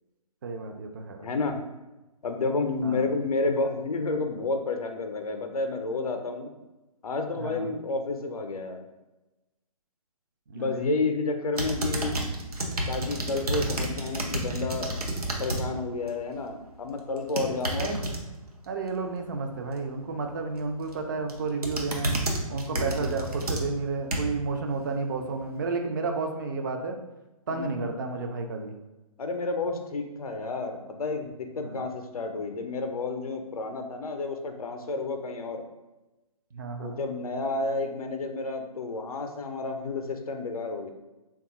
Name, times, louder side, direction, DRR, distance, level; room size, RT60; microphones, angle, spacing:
voice 1, 0.4-1.3 2.8-3.1 7.4-7.7 10.5-10.9 17.7-18.0 18.7-22.2 22.5-27.0 27.5-28.8 31.6-31.8 36.5-37.0, right 4 dB, 35° right, 3 dB, 0.4 m, -32 dB
voice 2, 1.2-1.6 2.2-6.5 7.0-8.8 10.5-12.2 12.9-14.9 15.4-17.9 22.7-23.2 27.5-27.8 29.2-35.6 36.8-40.9, left 3 dB, 70° left, 5 dB, 0.5 m, -30 dB
sound 1, 11.5-15.6 16.0-16.4 17.2-18.2 20.6-20.9 21.3-24.5 25.0-25.1, right 1 dB, 80° right, 0.6 m, -30 dB
3.4 x 2.3 x 2.8 m, 1.1 s
figure-of-eight pair, 135°, 19 cm